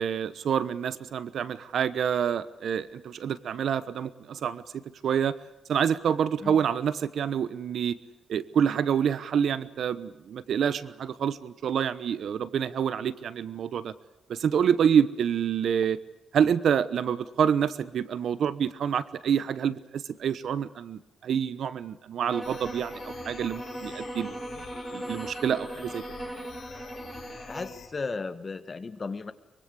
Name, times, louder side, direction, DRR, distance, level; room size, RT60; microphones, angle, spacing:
voice 1, 0.0-4.6 5.0-5.3 5.7-8.0 8.3-13.9 14.3-16.0 16.3-24.4 24.9-26.0, right 8 dB, 65° right, 16 dB, 1.1 m, -27 dB
sound 1, 22.3-27.8, right 1 dB, 5° right, 2.2 m, -39 dB
sound 2, 22.4-27.9, left 6 dB, 70° left, 6.3 m, -47 dB
voice 2, 27.5-29.3, left 4 dB, 30° left, 12 dB, 1.5 m, -35 dB
24.0 x 23.5 x 8.5 m, 0.93 s
wide cardioid pair, 155°, 0 cm